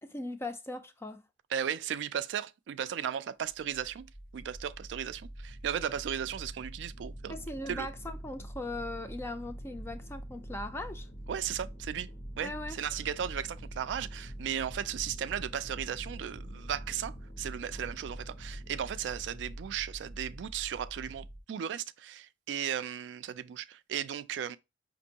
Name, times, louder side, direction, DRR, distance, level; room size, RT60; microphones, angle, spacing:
voice 1, 0.0-1.2 7.3-11.1 12.4-12.8, left 2 dB, 15° left, 0.4 m, -39 dB
voice 2, 1.5-7.9 11.3-12.1 12.4-24.6, right 9 dB, 75° right, 0.3 m, -36 dB
sound 1, 3.5-21.4, right 1 dB, 65° left, 1.1 m, -44 dB
5.2 x 2.5 x 2.8 m
head